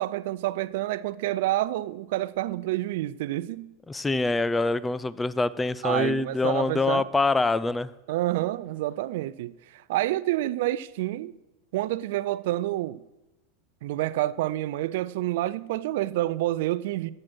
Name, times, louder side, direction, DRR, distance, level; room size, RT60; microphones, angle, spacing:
voice 1, 0.0-3.7 5.8-7.0 8.1-9.5 9.9-11.3 11.7-13.0 13.8-17.1, right 15 dB, 60° right, 0.4 m, -28 dB
voice 2, 3.9-7.9, left 3 dB, 10° left, 0.6 m, -25 dB
13.5 x 7.6 x 6.1 m
figure-of-eight pair, 85°, 0 cm